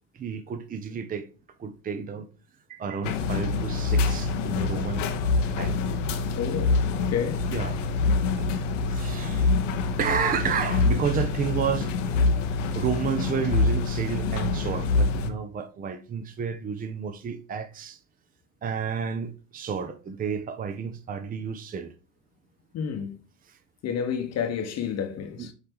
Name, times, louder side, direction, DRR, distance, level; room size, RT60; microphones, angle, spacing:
voice 1, 0.1-1.3 1.6-2.3 2.7-5.0 5.4-5.8 7.5-7.8 8.4-8.5 8.9-9.5 10.0-11.9 12.7-18.0 18.6-21.9 23.5-23.6 25.4-25.5, right 6 dB, 20° right, 0.7 m, -31 dB
sound 1, 3.0-15.3, left 3 dB, 75° left, 0.9 m, -25 dB
voice 2, 6.3-7.5 22.7-23.2 23.8-25.5, left 7 dB, 45° left, 1.0 m, -30 dB
8.1 x 3.2 x 3.6 m
hypercardioid pair, 70°, 38 cm